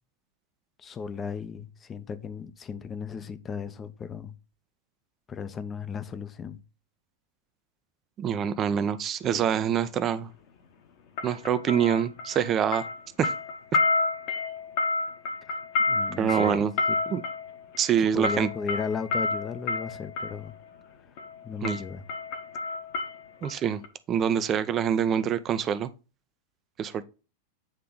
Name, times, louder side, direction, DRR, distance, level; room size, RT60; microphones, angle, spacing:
voice 1, 0.8-4.4 5.3-6.6 15.9-16.7 18.0-20.6 21.4-22.0, left 6 dB, 20° left, 0.7 m, -35 dB
voice 2, 8.2-10.3 11.2-12.8 13.2-13.3 16.2-16.7 17.1-17.2 17.8-18.5 21.6-21.8 23.4-23.8 24.1-25.9 26.8-27.0, right 8 dB, 30° right, 0.6 m, -25 dB
sound 1, 9.2-9.5 11.2-12.5 12.7-20.4 21.2-21.4 21.6-23.5 23.8-23.9, left 3 dB, 50° left, 1.2 m, -30 dB
8.8 x 3.3 x 3.9 m
figure-of-eight pair, 90°, 0 cm